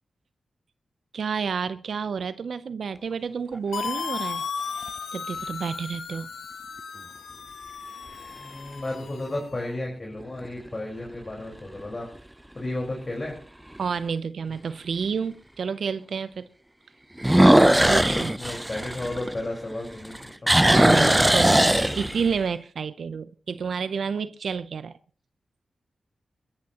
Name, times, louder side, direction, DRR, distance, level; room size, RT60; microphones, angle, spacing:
voice 1, 1.1-4.4 5.1-6.3 13.8-16.5 17.8-18.3 20.6-25.0, right 6 dB, 75° right, 0.6 m, -30 dB
sound 1, 3.5-4.2 4.9-5.0 10.2-10.7 11.1-11.2 11.8-11.9 12.1-12.2 13.8-13.9 17.2-19.7 20.0-22.4, right 1 dB, 10° right, 0.6 m, -19 dB
sound 2, 3.7-9.5, left 6 dB, 80° left, 1.3 m, -35 dB
voice 2, 8.4-12.1 12.5-13.3 17.9-20.6, left 1 dB, 35° left, 4.6 m, -33 dB
21.5 x 13.5 x 3.0 m
cardioid pair, 50°, 0 cm